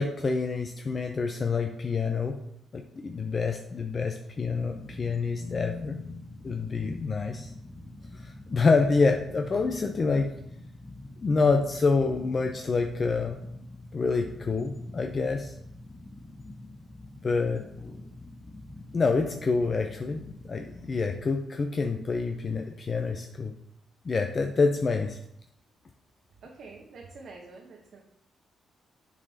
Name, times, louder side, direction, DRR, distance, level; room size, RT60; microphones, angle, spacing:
voice 1, 0.0-2.4 2.7-6.0 6.4-7.5 8.1-10.3 11.2-13.4 13.9-15.5 17.2-17.6 18.9-23.5 24.0-25.2, left 4 dB, 45° left, 5 dB, 0.6 m, -27 dB
sound 1, 4.5-21.1, left 2 dB, 30° left, 1.2 m, -44 dB
voice 2, 26.4-28.0, right 3 dB, 65° right, -1 dB, 1.0 m, -47 dB
7.1 x 4.0 x 4.1 m, 0.75 s
hypercardioid pair, 50°, 0 cm